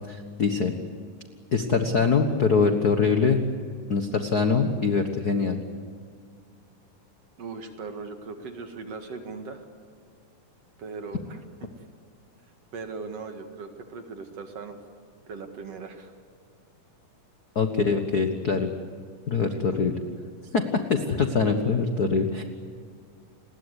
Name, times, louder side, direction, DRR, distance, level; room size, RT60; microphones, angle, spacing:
voice 1, 0.1-0.7 1.5-3.4 3.9-5.6 17.5-18.7 19.3-19.9 20.5-22.4, left 5 dB, 75° left, 6 dB, 0.8 m, -23 dB
voice 2, 7.4-9.6 10.8-11.7 12.7-14.8 15.3-16.1 19.5-19.6, right 4 dB, 50° right, 5 dB, 2.6 m, -39 dB
30.0 x 21.0 x 8.2 m, 2.1 s
omnidirectional pair, 4.0 m